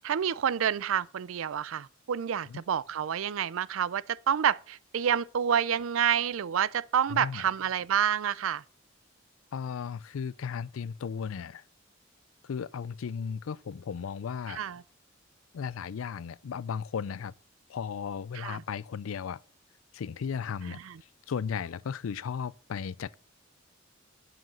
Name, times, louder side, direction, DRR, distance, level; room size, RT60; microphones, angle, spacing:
voice 1, 0.0-8.6 14.5-14.8 18.4-18.6 20.7-21.0, right 8 dB, 85° right, 0.4 m, -28 dB
voice 2, 7.1-7.4 9.5-11.6 12.4-14.6 15.5-17.3 17.7-19.4 19.9-20.8 21.3-23.2, left 6 dB, 90° left, 0.4 m, -35 dB
7.8 x 7.7 x 5.6 m
head